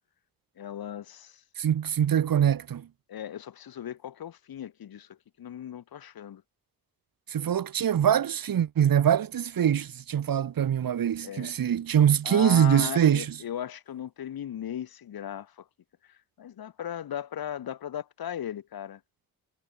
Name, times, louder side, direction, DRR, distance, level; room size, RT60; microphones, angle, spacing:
voice 1, 0.6-1.4 3.1-6.4 11.2-11.6 12.2-15.6 16.4-19.0, left 10 dB, 75° left, 1.8 m, -37 dB
voice 2, 1.6-2.9 7.3-13.3, right 9 dB, 70° right, 1.6 m, -23 dB
cardioid pair, 75°, 36 cm